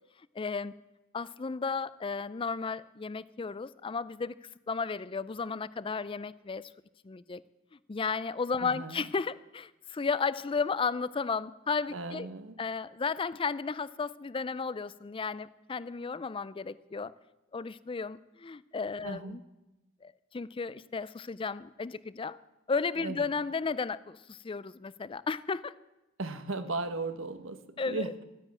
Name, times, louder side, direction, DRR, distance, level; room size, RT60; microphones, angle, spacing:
voice 1, 0.4-0.7 1.1-4.3 4.7-6.7 7.0-7.4 7.9-12.3 12.6-17.1 17.5-19.4 20.0-22.4 22.7-25.7 27.8-28.1, left 4 dB, 25° left, 18 dB, 0.4 m, -34 dB
voice 2, 8.6-9.0 11.9-12.5 19.0-19.4 23.0-23.2 26.2-27.6 27.9-28.2, right 3 dB, 75° right, 10 dB, 1.2 m, -36 dB
13.0 x 9.9 x 8.7 m, 1.0 s
head